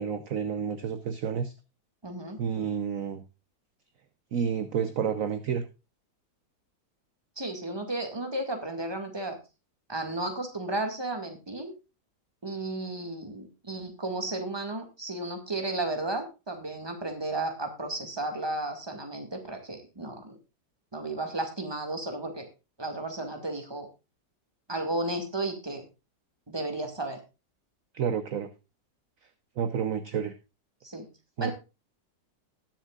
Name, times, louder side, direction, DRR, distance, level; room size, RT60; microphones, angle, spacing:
voice 1, 0.0-1.5 2.4-3.2 4.3-5.6 27.9-28.5 29.6-30.3 31.4-31.5, right 7 dB, 55° right, 10 dB, 1.1 m, -30 dB
voice 2, 2.0-2.4 7.4-9.4 9.9-11.7 12.4-20.4 20.9-22.5 22.8-23.9 24.7-25.8 26.5-27.2 30.8-31.1 31.4-31.5, right 2 dB, 15° right, 5 dB, 2.0 m, -33 dB
20.0 x 7.4 x 2.4 m, 0.28 s
omnidirectional pair, 2.0 m